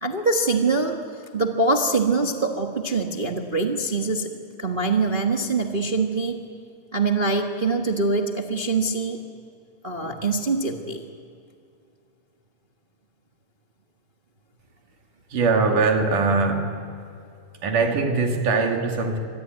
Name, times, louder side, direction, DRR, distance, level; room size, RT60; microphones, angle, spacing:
voice 1, 0.0-1.0 1.3-4.3 4.6-6.4 6.9-9.2 9.8-11.0, right 3 dB, 50° right, 2 dB, 0.6 m, -24 dB
voice 2, 15.3-16.9 17.6-19.2, right 4 dB, 90° right, 3 dB, 3.9 m, -22 dB
26.0 x 22.0 x 9.3 m, 2.4 s
omnidirectional pair, 3.5 m